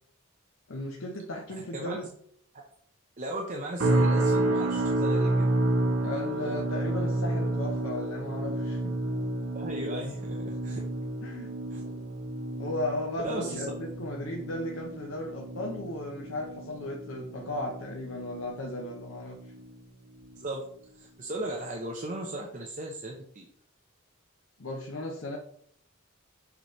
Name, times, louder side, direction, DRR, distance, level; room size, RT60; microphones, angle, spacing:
voice 1, 0.7-2.0 6.0-9.0 11.2-11.5 12.6-19.4 24.6-25.4, left 1 dB, 70° left, 0 dB, 0.8 m, -35 dB
voice 2, 1.6-2.0 3.2-5.5 9.5-10.8 11.7-12.0 13.2-13.6 20.4-20.7 20.9-23.5, right 1 dB, 40° right, 0 dB, 0.7 m, -37 dB
sound 1, 3.8-19.0 19.3-19.7 20.2-20.4, right 2 dB, 90° right, 1.2 m, -30 dB
6.7 x 4.8 x 3.1 m, 0.66 s
head